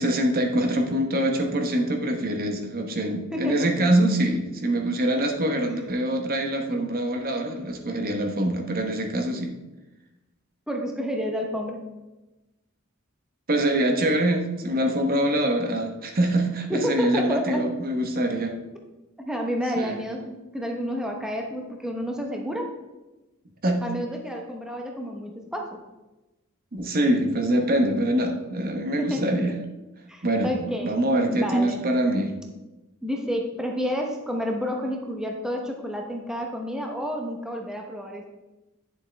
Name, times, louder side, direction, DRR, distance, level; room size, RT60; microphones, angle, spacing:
voice 1, 0.0-9.6 13.5-18.6 19.8-20.0 23.6-23.8 26.7-29.5 30.2-32.3, right 1 dB, 45° right, 4 dB, 1.0 m, -24 dB
voice 2, 3.3-3.9 10.7-11.8 16.7-17.7 19.3-22.7 23.8-25.8 29.0-29.6 30.1-31.0 31.3-31.8 33.0-38.3, equal, 5° right, 1 dB, 0.8 m, -30 dB
10.0 x 7.1 x 3.4 m, 1.1 s
head